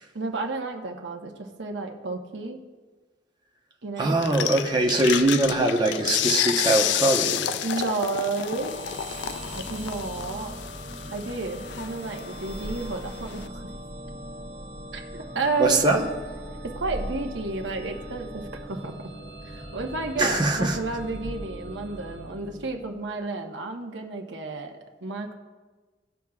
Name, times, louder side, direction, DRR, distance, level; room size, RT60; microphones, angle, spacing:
voice 1, 0.1-2.6 3.8-4.2 7.6-8.7 9.5-10.5 11.1-13.7 14.9-15.0 15.3-16.1 16.6-19.1 19.4-25.3, right 3 dB, 75° right, 3 dB, 1.0 m, -31 dB
voice 2, 4.0-7.6 15.6-16.0 20.2-20.8, right 2 dB, 25° right, 1 dB, 0.9 m, -22 dB
sound 1, 4.2-13.5, left 10 dB, 65° left, 0.3 m, -30 dB
sound 2, 8.4-23.1, right 1 dB, 45° right, 1.5 m, -39 dB
17.5 x 6.2 x 2.4 m, 1.3 s
head